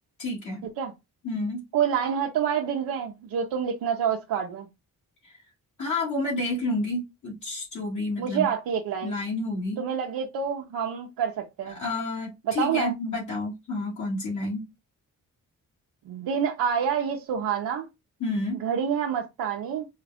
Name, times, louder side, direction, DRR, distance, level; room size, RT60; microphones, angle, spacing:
voice 1, 0.2-0.7 1.2-1.6 5.8-8.5 9.0-9.8 11.7-14.6 18.2-18.6, left 2 dB, 60° left, 2.3 m, -30 dB
voice 2, 1.7-4.7 8.2-9.1 9.8-11.8 12.4-12.9 16.1-17.9 18.5-19.9, right 8 dB, 90° right, 0.7 m, -27 dB
4.7 x 2.4 x 3.4 m
cardioid pair, 85°, 34 cm